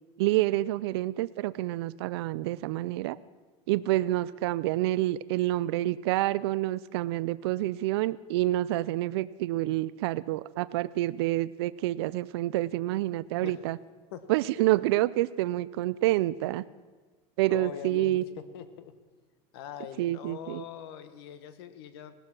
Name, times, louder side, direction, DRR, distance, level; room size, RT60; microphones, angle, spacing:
voice 1, 0.2-3.2 3.7-13.8 14.3-16.7 17.4-18.2 20.0-20.6, right 16 dB, 80° right, 18 dB, 0.4 m, -28 dB
voice 2, 17.5-18.9 19.5-22.1, left 9 dB, 70° left, 11 dB, 1.3 m, -42 dB
17.5 x 12.5 x 6.0 m, 1.4 s
cardioid pair, 180°, 13 cm